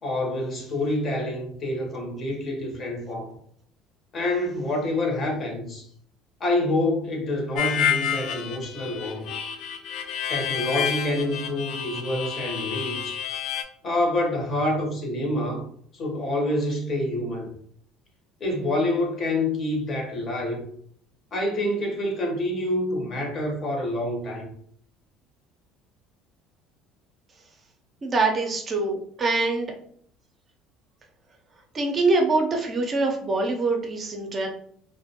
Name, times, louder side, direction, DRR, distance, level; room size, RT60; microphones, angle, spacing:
voice 1, 0.0-3.4 4.1-5.9 6.4-9.3 10.3-13.3 13.8-15.7 15.9-17.5 18.4-20.6 21.3-24.5, left 1 dB, 40° left, 1 dB, 0.8 m, -27 dB
Harmonica, 7.6-13.6, left 9 dB, 65° left, 0.3 m, -29 dB
voice 2, 28.0-29.7 31.7-34.5, right 3 dB, 30° right, 2 dB, 0.5 m, -24 dB
2.4 x 2.1 x 2.8 m, 0.63 s
supercardioid pair, 105°, 0 cm